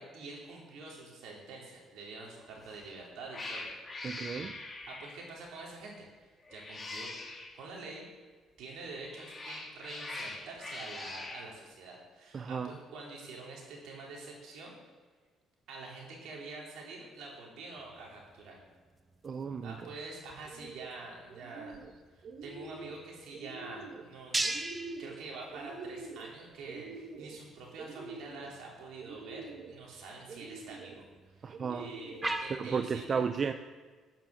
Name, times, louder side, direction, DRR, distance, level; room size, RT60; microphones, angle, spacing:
voice 1, 0.0-3.7 4.9-7.1 7.5-8.1 8.6-14.8 15.7-18.6 19.6-21.8 22.1-24.5 25.0-31.1 31.3-33.2, right 3 dB, 75° right, -2 dB, 4.0 m, -46 dB
Cat, 2.6-2.9 3.3-5.3 6.4-7.5 8.9-11.4, left 2 dB, 20° left, 2.8 m, -43 dB
voice 2, 4.0-4.6 12.3-12.8 19.2-19.9 31.4-31.9 32.5-33.5, right 6 dB, 40° right, 10 dB, 0.5 m, -34 dB
sound 1, 17.8-32.6, right 2 dB, 15° right, 1.0 m, -43 dB
sound 2, 20.4-20.9 21.3-21.9 22.2-23.0 23.3-24.0 24.4-25.2 25.5-26.3 26.6-27.4 27.8-28.5 29.0-29.7 30.3-30.9 31.5-32.3, right 4 dB, 55° right, 1.4 m, -46 dB
13.0 x 7.3 x 7.3 m, 1.5 s
cardioid pair, 105°, 0 cm